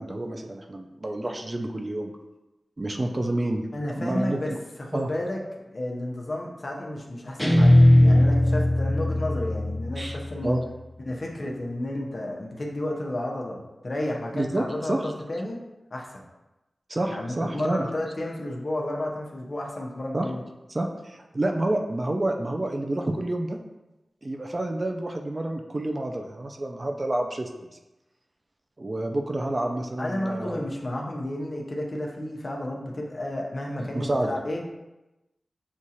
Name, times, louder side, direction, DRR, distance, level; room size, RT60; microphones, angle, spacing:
voice 1, 0.0-2.1 2.8-3.7 3.9-4.6 4.9-5.1 10.0-10.2 10.4-10.6 14.3-15.1 16.9-17.9 20.1-20.3 20.7-23.6 24.2-27.7 28.8-30.6 33.8-34.4, right 1 dB, 35° right, 4 dB, 0.4 m, -29 dB
voice 2, 3.7-4.5 4.8-10.6 11.1-15.6 15.9-16.2 17.1-20.4 30.0-34.6, left 1 dB, 45° left, -1 dB, 0.8 m, -32 dB
Guitar, 7.4-10.6, left 1 dB, 5° left, 0.6 m, -19 dB
6.3 x 2.4 x 2.8 m, 1.0 s
wide cardioid pair, 60°, 0 cm